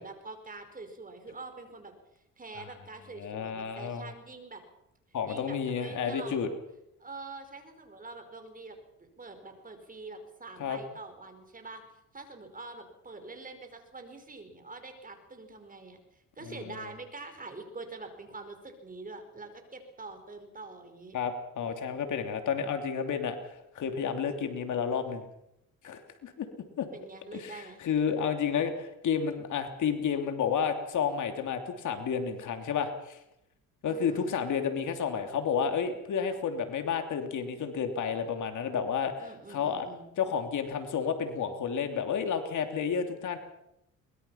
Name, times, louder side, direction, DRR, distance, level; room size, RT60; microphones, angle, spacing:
voice 1, 0.0-4.6 5.3-6.5 7.0-11.8 12.1-21.2 26.9-27.8 33.9-34.3 39.2-40.1, right 3 dB, 25° right, 7 dB, 5.2 m, -45 dB
voice 2, 3.2-4.1 5.1-6.5 10.6-10.8 16.4-16.8 21.1-23.4 23.7-25.3 25.8-26.5 26.8-26.9 27.3-33.2 33.8-39.1 39.5-39.9 40.2-43.4, left 7 dB, 65° left, 6 dB, 3.0 m, -31 dB
23.0 x 21.5 x 5.8 m, 0.82 s
cardioid pair, 90°, 33 cm